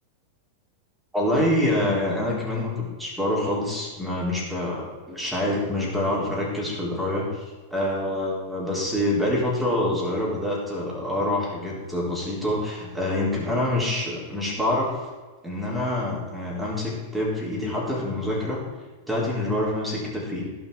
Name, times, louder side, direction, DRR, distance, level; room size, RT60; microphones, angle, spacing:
voice 1, 1.1-7.4 7.7-15.1 15.4-18.6 19.1-20.4, left 1 dB, 5° right, -4 dB, 4.2 m, -26 dB
16.0 x 6.0 x 5.1 m, 1.3 s
figure-of-eight pair, 90°, 0 cm